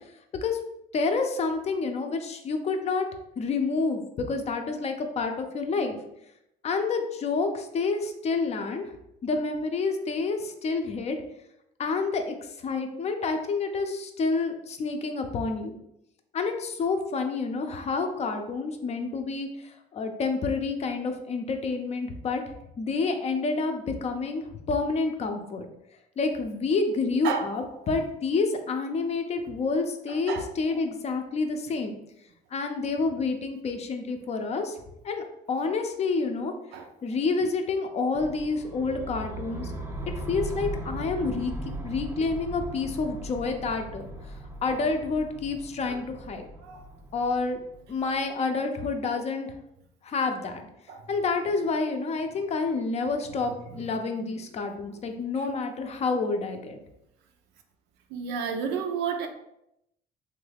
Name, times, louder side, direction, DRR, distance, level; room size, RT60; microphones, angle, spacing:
voice 1, 0.9-3.1 3.4-6.0 6.6-8.9 9.2-11.2 11.8-15.8 16.3-22.4 22.8-25.7 26.2-32.0 32.5-34.8 35.0-36.5 37.0-39.7 40.3-41.5 41.8-44.3 44.6-46.5 47.1-47.6 47.9-49.5 50.0-50.7 51.1-56.8, left 4 dB, 40° left, 5 dB, 0.5 m, -28 dB
voice 2, 30.1-30.5 36.7-36.9 45.9-46.0 46.6-46.9 50.9-51.1 53.7-53.8 58.1-59.3, right 6 dB, 90° right, 5 dB, 0.5 m, -31 dB
sound 1, 38.1-48.2, right 1 dB, 15° right, 0.4 m, -38 dB
3.2 x 2.3 x 3.3 m, 0.81 s
cardioid pair, 110°, 17 cm